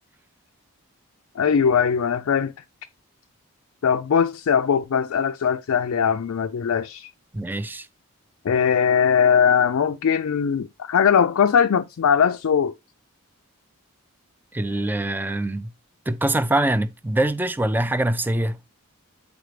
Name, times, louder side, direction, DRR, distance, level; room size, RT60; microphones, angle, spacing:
voice 1, 1.4-2.5 3.8-7.1 8.4-12.7, left 7 dB, 65° left, 0.4 m, -20 dB
voice 2, 7.3-7.9 14.5-15.7 16.1-18.6, right 1 dB, 10° right, 0.3 m, -24 dB
8.0 x 4.1 x 3.2 m
head